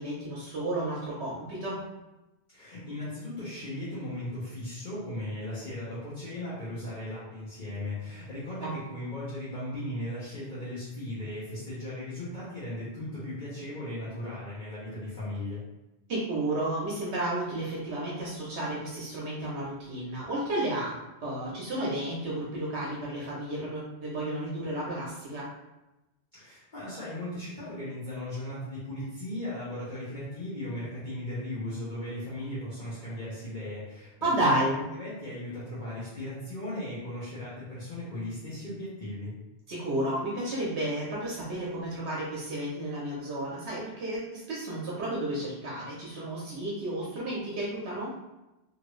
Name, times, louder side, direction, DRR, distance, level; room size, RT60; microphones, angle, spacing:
voice 1, 0.0-1.8 8.6-8.7 16.1-21.0 21.2-25.5 34.2-34.8 39.7-48.1, right 1 dB, 80° right, -5 dB, 1.0 m, -32 dB
voice 2, 2.5-15.6 26.3-34.1 34.4-34.6 34.9-39.3, left 1 dB, 50° left, -10 dB, 1.1 m, -37 dB
3.0 x 2.5 x 3.0 m, 1.0 s
omnidirectional pair, 1.1 m